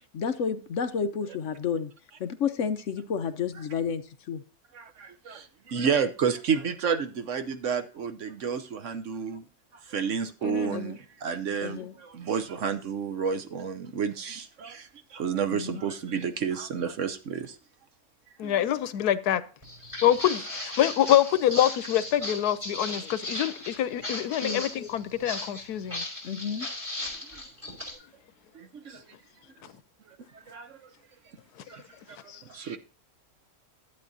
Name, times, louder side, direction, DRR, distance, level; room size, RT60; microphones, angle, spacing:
voice 1, 0.1-1.9 2.2-4.0 4.3-4.4 10.7-11.0 11.6-11.9 15.5-15.8 24.4-24.6 26.2-26.7, left 6 dB, 60° left, 0.9 m, -30 dB
voice 2, 4.7-9.4 9.9-17.5 18.4-18.5 27.3-27.4 28.5-29.0 30.3-30.8 31.7-31.8 32.4-32.8, right 6 dB, 60° right, 1.0 m, -30 dB
voice 3, 10.4-10.8 18.4-19.4 20.0-26.0 32.3-32.4, left 11 dB, 85° left, 1.2 m, -25 dB
Walk footsteps, 19.6-27.9, left 1 dB, 20° right, 4.9 m, -37 dB
11.5 x 8.4 x 2.7 m
omnidirectional pair, 1.6 m